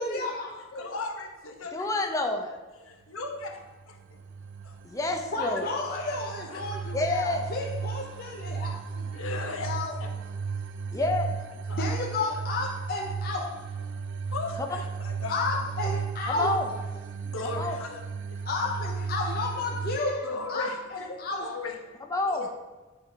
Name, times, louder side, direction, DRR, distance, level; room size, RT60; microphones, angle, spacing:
voice 1, 0.0-1.0 5.3-9.2 9.6-9.9 11.7-13.6 15.3-16.5 18.5-21.5, left 3 dB, 45° left, -1 dB, 0.8 m, -32 dB
voice 2, 0.7-1.9 2.8-3.6 3.9-4.0 4.6-4.8 5.4-5.9 6.5-6.8 9.1-10.1 11.5-11.9 14.3-15.9 17.2-18.0 18.3-18.4 20.2-22.5, left 3 dB, 70° left, 4 dB, 1.0 m, -38 dB
voice 3, 1.7-2.6 4.8-5.7 6.9-7.5 10.9-11.4 16.3-16.7 17.6-17.8 22.1-22.4, left 2 dB, 15° left, 3 dB, 0.6 m, -28 dB
sound 1, 3.7-20.0, right 5 dB, 60° right, 0.4 m, -35 dB
8.9 x 4.8 x 4.7 m, 1.2 s
head